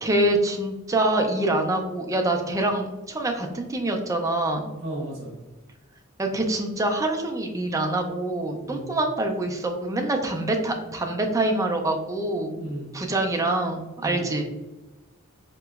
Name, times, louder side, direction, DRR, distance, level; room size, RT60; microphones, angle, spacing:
voice 1, 0.0-4.7 6.2-12.5 12.9-14.4, right 2 dB, 15° right, 3 dB, 0.4 m, -25 dB
voice 2, 4.8-5.3 8.6-8.9 12.6-12.9 14.0-14.3, right 1 dB, 40° right, -3 dB, 0.9 m, -34 dB
4.1 x 2.9 x 2.3 m, 1.1 s
head